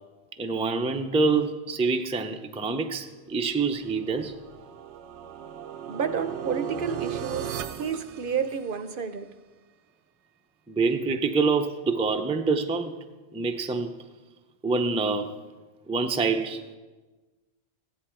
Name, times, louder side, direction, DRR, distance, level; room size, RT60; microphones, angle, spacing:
voice 1, 0.4-4.4 10.7-13.0 13.3-14.0 14.6-15.4 15.9-16.7, right 4 dB, 10° right, 5 dB, 0.4 m, -26 dB
sound 1, 3.8-9.0, right 9 dB, 85° right, 0.9 m, -37 dB
voice 2, 5.9-9.3, right 6 dB, 55° right, 10 dB, 0.8 m, -30 dB
15.0 x 10.5 x 4.4 m, 1.3 s
omnidirectional pair, 1.1 m